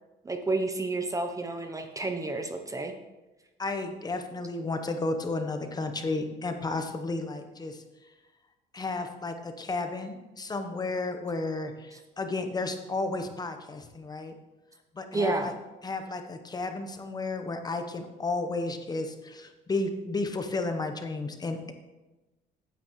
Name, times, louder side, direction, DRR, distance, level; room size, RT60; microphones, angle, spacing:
voice 1, 0.2-2.9 15.1-15.5, right 2 dB, 20° right, 6 dB, 0.7 m, -30 dB
voice 2, 3.6-7.8 8.7-14.3 14.9-15.5 15.8-21.7, left 3 dB, 25° left, 7 dB, 0.9 m, -33 dB
9.1 x 8.7 x 3.1 m, 1.1 s
cardioid pair, 110°, 17 cm